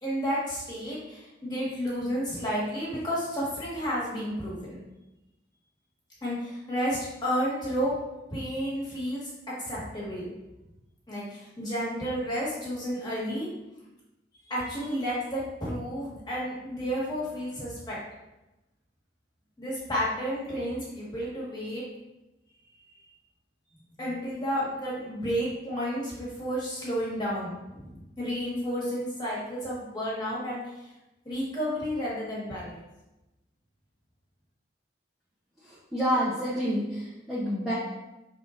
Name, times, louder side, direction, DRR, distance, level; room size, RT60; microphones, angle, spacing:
voice 1, 0.0-4.8 6.2-7.9 8.3-9.3 9.6-10.3 11.1-13.5 14.5-18.0 19.6-21.9 24.0-30.6 31.2-32.8, equal, 25° left, -7 dB, 1.5 m, -31 dB
voice 2, 35.6-37.7, equal, ahead, -10 dB, 0.7 m, -28 dB
5.5 x 3.7 x 2.5 m, 0.98 s
head